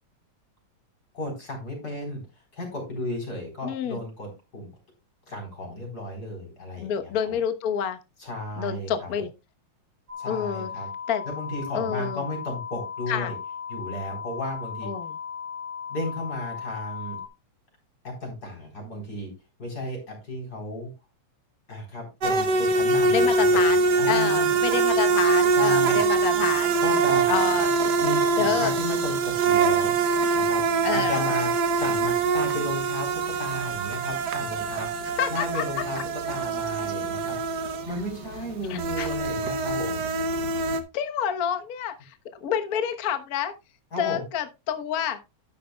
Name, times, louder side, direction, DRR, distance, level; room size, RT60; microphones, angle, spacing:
voice 1, 1.1-2.2 2.5-4.7 5.3-7.4 8.2-9.1 10.2-10.9 11.2-13.4 13.7-14.9 15.9-17.2 18.0-19.3 19.6-20.9 21.7-24.5 25.5-26.0 26.8-27.3 28.0-29.9 30.3-37.4 37.9-40.0 43.9-44.2, left 1 dB, 30° left, 1 dB, 4.4 m, -34 dB
voice 2, 3.6-4.0 6.8-8.0 8.6-9.3 10.2-10.7 11.1-11.2 11.7-12.2 13.1-13.3 14.8-15.1 23.1-26.7 27.3-27.7 28.4-28.7 30.8-31.2 35.2-35.6 38.7-39.1 40.9-42.2 42.4-43.5 44.0-45.2, left 8 dB, 75° left, 7 dB, 0.8 m, -28 dB
sound 1, 10.1-17.3, left 7 dB, 45° right, 2.4 m, -36 dB
sound 2, 22.2-40.8, right 4 dB, 85° right, 0.9 m, -24 dB
12.0 x 10.0 x 2.3 m, 0.25 s
omnidirectional pair, 3.3 m